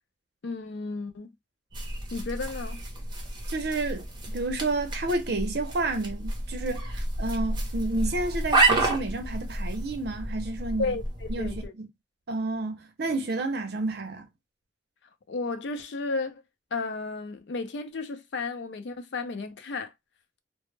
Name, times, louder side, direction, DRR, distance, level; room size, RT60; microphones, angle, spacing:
voice 1, 0.4-1.3 2.1-2.8 10.8-11.7 15.3-16.4 16.7-19.9, left 3 dB, 70° left, 0.5 m, -33 dB
sound 1, 1.7-11.7, right 2 dB, 25° right, 0.7 m, -30 dB
voice 2, 3.5-4.0 4.3-11.0 11.3-11.9 12.3-14.3, right 2 dB, 60° right, 0.6 m, -30 dB
2.1 x 2.0 x 3.1 m
head